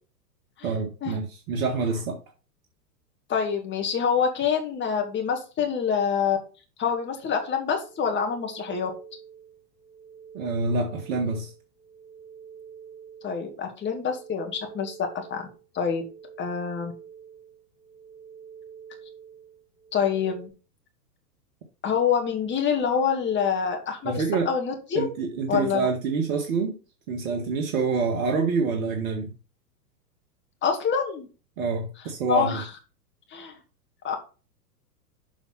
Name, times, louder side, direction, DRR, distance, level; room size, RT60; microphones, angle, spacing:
voice 1, 0.6-2.2 10.3-11.5 24.0-24.5 24.9-26.8 27.1-29.3 31.6-32.6, right 4 dB, 55° right, 1.8 m, -27 dB
voice 2, 3.3-6.4 6.8-8.9 13.2-15.0 15.3-15.4 15.7-16.0 16.4-16.9 19.9-20.5 21.8-25.1 25.5-25.9 30.6-31.3 32.3-32.6 33.3-33.5 34.0-34.2, left 7 dB, 25° left, 2.1 m, -26 dB
sound 1, 7.8-20.5, right 7 dB, 85° right, 2.4 m, -47 dB
7.1 x 5.7 x 4.2 m
hypercardioid pair, 105°, 49 cm